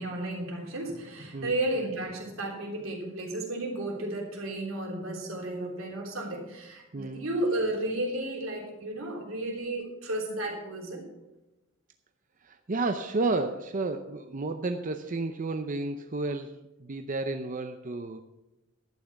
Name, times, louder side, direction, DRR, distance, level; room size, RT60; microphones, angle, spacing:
voice 1, 0.0-11.0, right 1 dB, 85° right, 0 dB, 3.4 m, -33 dB
voice 2, 6.9-7.3 12.4-18.2, right 3 dB, 40° right, 7 dB, 0.6 m, -32 dB
11.5 x 8.8 x 5.9 m, 1.0 s
head